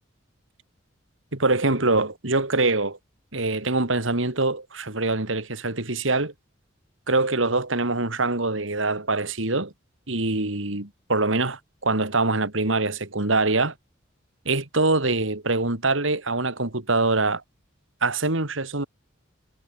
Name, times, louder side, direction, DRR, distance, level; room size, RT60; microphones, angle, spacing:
voice 1, 1.3-3.0 3.3-6.3 7.1-9.7 10.1-13.7 14.4-17.4 18.0-18.9, right 3 dB, 70° right, 2.9 m, -24 dB
head